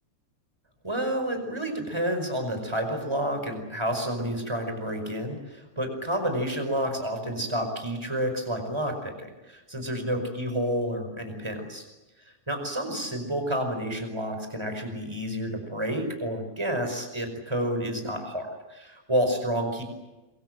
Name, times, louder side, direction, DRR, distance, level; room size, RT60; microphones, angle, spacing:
voice 1, 0.8-11.8 12.5-19.8, equal, 5° right, 5 dB, 4.6 m, -30 dB
27.0 x 24.0 x 7.8 m, 1.1 s
omnidirectional pair, 5.0 m